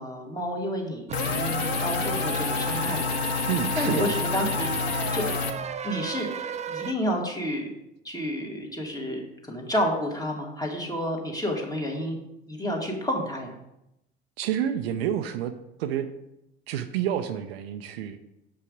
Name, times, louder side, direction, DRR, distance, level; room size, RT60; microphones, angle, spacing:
voice 1, 0.0-3.1 3.8-4.8 5.1-5.3 5.8-6.3 6.7-7.7 8.0-12.2 12.5-13.5, equal, 10° left, 0 dB, 2.1 m, -30 dB
sound 1, 1.1-5.5, left 6 dB, 75° left, 0.7 m, -28 dB
sound 2, 1.1-6.9, right 7 dB, 20° right, 0.4 m, -33 dB
voice 2, 3.5-4.2 14.4-15.5 15.8-16.1 16.7-18.2, right 10 dB, 70° right, 9 dB, 0.6 m, -29 dB
7.1 x 5.5 x 5.1 m, 0.85 s
hypercardioid pair, 65°, 31 cm